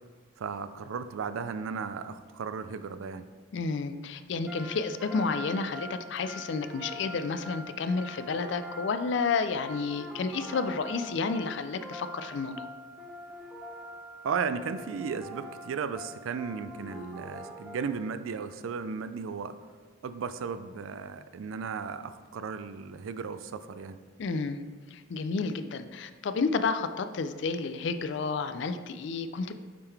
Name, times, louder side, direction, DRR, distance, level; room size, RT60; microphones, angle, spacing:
voice 1, 0.4-3.3 14.2-19.6 20.0-24.0, right 5 dB, 85° right, 12 dB, 0.4 m, -35 dB
voice 2, 3.5-12.7 24.2-24.6 24.9-29.6, left 4 dB, 60° left, 10 dB, 0.4 m, -31 dB
sound 1, 4.5-18.3, equal, 5° right, 0.7 m, -44 dB
8.7 x 3.7 x 3.4 m, 1.5 s
head